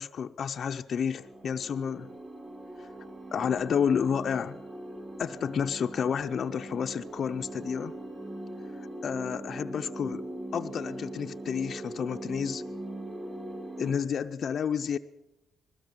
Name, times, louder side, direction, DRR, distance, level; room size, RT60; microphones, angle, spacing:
voice 1, 0.0-2.1 2.8-2.9 3.3-4.6 5.2-7.9 9.0-10.2 10.5-12.6 13.8-15.0, left 7 dB, 55° left, 6 dB, 0.7 m, -30 dB
sound 1, 1.2-13.9, right 1 dB, 25° right, 3.3 m, -41 dB
21.0 x 17.0 x 7.4 m, 0.94 s
cardioid pair, 90°, 0 cm